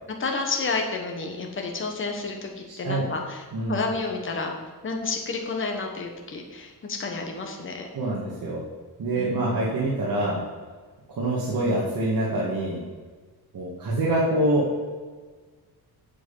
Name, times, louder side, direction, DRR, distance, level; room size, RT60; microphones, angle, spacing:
voice 1, 0.2-4.5 4.8-7.9 9.2-9.6, left 4 dB, 30° left, 2 dB, 1.2 m, -30 dB
voice 2, 7.9-8.6 9.0-10.4 11.2-12.8 13.5-14.6, right 1 dB, 55° right, -6 dB, 2.0 m, -25 dB
8.0 x 7.6 x 5.5 m, 1.4 s
wide cardioid pair, 165°, 39 cm